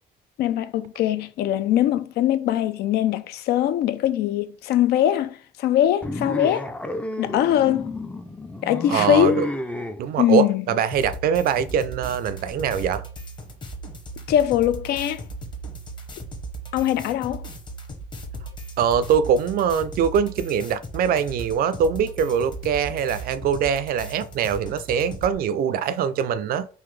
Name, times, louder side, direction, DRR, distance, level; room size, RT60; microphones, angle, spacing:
voice 1, 0.4-6.7 7.2-7.9 8.6-9.5 10.2-10.6 14.3-15.2 16.7-17.4, left 11 dB, 70° left, 0.4 m, -22 dB
sound 1, 6.0-10.0, left 1 dB, 5° left, 0.4 m, -30 dB
voice 2, 8.9-9.5 10.0-13.0 18.8-26.7, right 7 dB, 60° right, 0.4 m, -23 dB
sound 2, 10.9-25.3, right 2 dB, 30° left, 0.9 m, -37 dB
3.9 x 2.6 x 3.1 m
cardioid pair, 110°, 17 cm